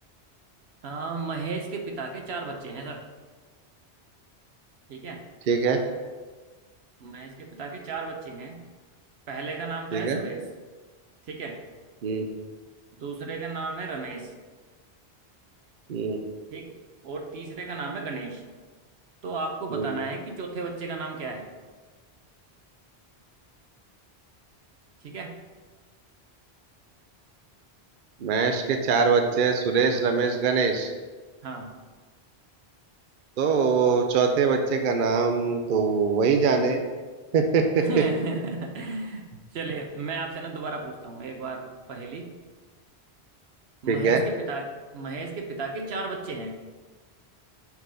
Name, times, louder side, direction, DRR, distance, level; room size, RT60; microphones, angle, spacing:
voice 1, 0.8-3.0 4.9-5.2 7.0-8.6 9.3-10.4 11.3-11.6 13.0-14.3 16.5-16.7 17.0-18.4 19.2-21.5 25.0-25.4 31.4-31.7 37.8-39.3 39.5-42.3 43.8-46.6, right 3 dB, 75° right, 3 dB, 1.1 m, -34 dB
voice 2, 5.5-5.8 9.9-10.2 12.0-12.3 15.9-16.2 19.7-19.9 28.2-30.9 33.4-36.8 37.3-37.8 43.9-44.2, right 5 dB, 60° right, 5 dB, 0.7 m, -23 dB
5.8 x 3.8 x 5.6 m, 1.4 s
omnidirectional pair, 1.1 m